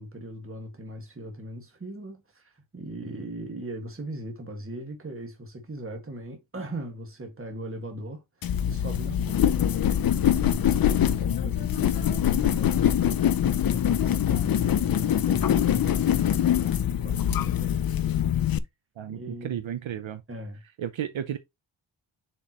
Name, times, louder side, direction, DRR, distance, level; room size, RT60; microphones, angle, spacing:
voice 1, 0.0-9.7 10.2-13.1 13.7-17.9 19.1-19.7 20.3-20.6, right 1 dB, 25° right, 1.9 m, -39 dB
sound 1, 8.4-18.6, left 10 dB, 50° left, 0.5 m, -24 dB
voice 2, 19.0-20.2 20.8-21.4, right 9 dB, 70° right, 0.8 m, -33 dB
7.0 x 4.5 x 3.0 m
wide cardioid pair, 170°, 49 cm